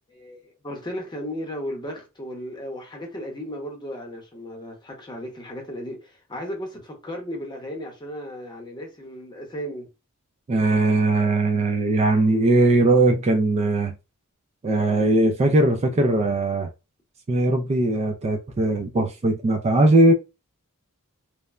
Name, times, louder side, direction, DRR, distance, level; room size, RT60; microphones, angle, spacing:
voice 1, 0.1-9.9, equal, 20° left, 0.7 m, -35 dB
voice 2, 10.5-13.9 14.6-16.7 17.3-20.1, right 2 dB, 30° right, 0.3 m, -20 dB
3.1 x 2.1 x 2.3 m
head